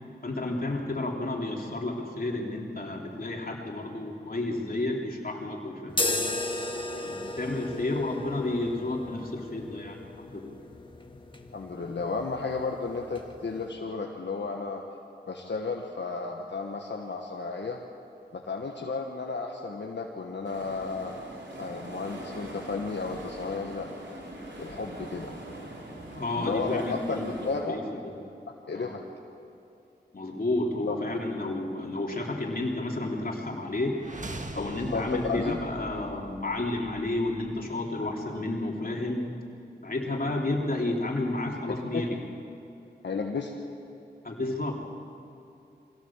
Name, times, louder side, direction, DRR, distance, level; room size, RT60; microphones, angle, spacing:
voice 1, 0.2-6.2 7.0-10.6 26.1-27.3 27.6-28.2 28.7-28.9 30.1-34.0 34.5-39.3 39.8-42.2 44.2-44.7, left 2 dB, 55° left, -1 dB, 3.3 m, -31 dB
sound 1, 5.9-13.7, left 2 dB, 25° left, 1.7 m, -35 dB
voice 2, 11.5-14.8 15.3-17.8 18.3-21.1 21.6-23.9 24.6-25.3 26.3-27.8 28.7-29.0 30.9-31.0 34.5-35.6 41.9-42.0 43.0-43.5, left 4 dB, 80° left, 0 dB, 1.4 m, -33 dB
sound 2, 20.4-27.6, right 1 dB, 80° right, 3.8 m, -42 dB
sound 3, 33.9-37.9, right 2 dB, 45° right, 1.6 m, -42 dB
23.0 x 17.0 x 7.4 m, 2.7 s
cardioid pair, 45°, 18 cm